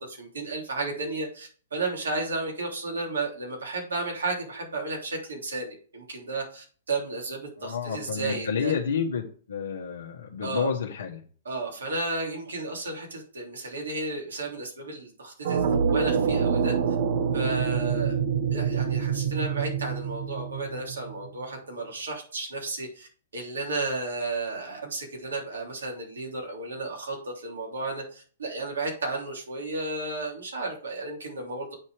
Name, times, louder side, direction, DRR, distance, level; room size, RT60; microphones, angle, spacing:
voice 1, 0.0-8.7 10.4-10.7 11.4-16.7 17.3-18.2 18.5-23.1 23.3-31.7, right 2 dB, 80° right, -1 dB, 3.3 m, -33 dB
voice 2, 7.6-11.2, left 6 dB, 80° left, -2 dB, 1.5 m, -30 dB
sound 1, 15.4-21.3, right 6 dB, 60° right, 1.1 m, -26 dB
8.6 x 4.3 x 4.9 m, 0.42 s
hypercardioid pair, 120°, 0 cm